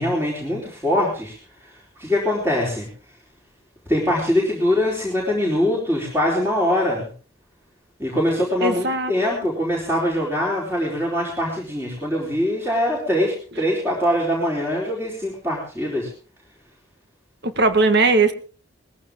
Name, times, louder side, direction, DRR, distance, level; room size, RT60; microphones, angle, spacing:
voice 1, 0.0-1.4 1.6-1.7 2.0-2.9 3.9-7.1 8.0-16.1, left 1 dB, 15° right, -3 dB, 4.1 m, -23 dB
voice 2, 8.6-9.1 17.4-18.3, right 3 dB, 60° right, 10 dB, 1.6 m, -18 dB
20.0 x 15.0 x 3.7 m, 0.38 s
head